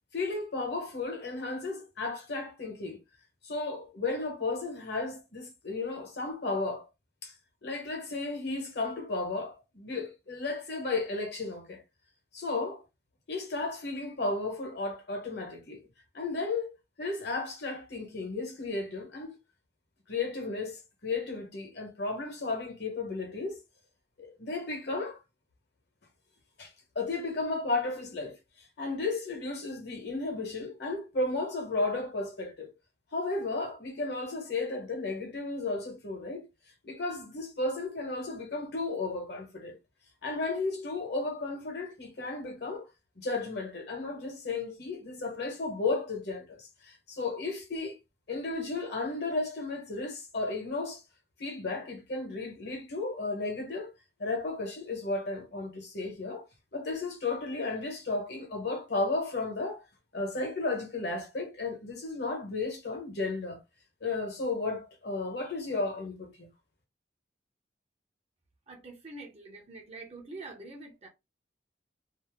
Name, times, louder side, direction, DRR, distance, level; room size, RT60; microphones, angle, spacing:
voice 1, 0.1-3.0 3.4-6.9 7.2-7.3 7.6-11.8 12.3-12.8 13.3-15.8 16.1-19.3 20.1-23.6 24.2-25.2 26.6-28.4 28.8-32.7 33.1-36.4 36.8-39.8 40.2-42.9 43.2-48.0 48.3-51.0 51.4-53.9 54.2-59.8 60.1-63.6 64.0-66.5, left 3 dB, 65° left, 1.2 m, -34 dB
voice 2, 68.7-71.1, right 2 dB, 35° right, 0.6 m, -45 dB
2.7 x 2.1 x 3.4 m
head